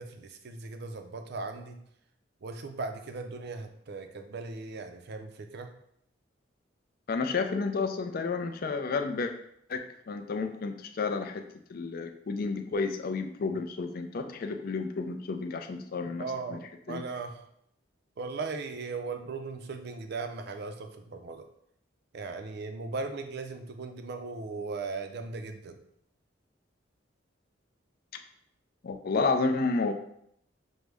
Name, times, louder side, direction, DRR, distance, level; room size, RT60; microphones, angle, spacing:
voice 1, 0.0-1.8 2.4-5.7 16.2-16.6 16.9-17.4 18.2-21.5 22.1-25.8, right 3 dB, 55° right, 7 dB, 0.4 m, -38 dB
voice 2, 7.1-9.3 9.7-11.4 11.7-16.6 16.9-17.0 28.8-29.9, left 4 dB, 50° left, 6 dB, 0.4 m, -31 dB
6.1 x 2.1 x 3.4 m, 0.72 s
head